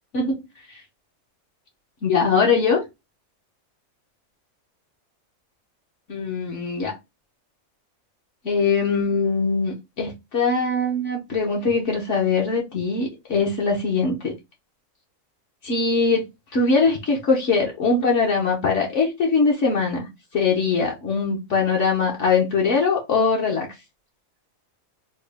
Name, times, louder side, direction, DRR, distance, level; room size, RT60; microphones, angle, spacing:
voice 1, 2.0-2.8 6.1-7.0 8.4-14.3 15.6-16.3 16.5-20.1 20.3-23.7, left 4 dB, 65° left, 1.3 m, -21 dB
3.9 x 2.2 x 3.3 m
omnidirectional pair, 1.4 m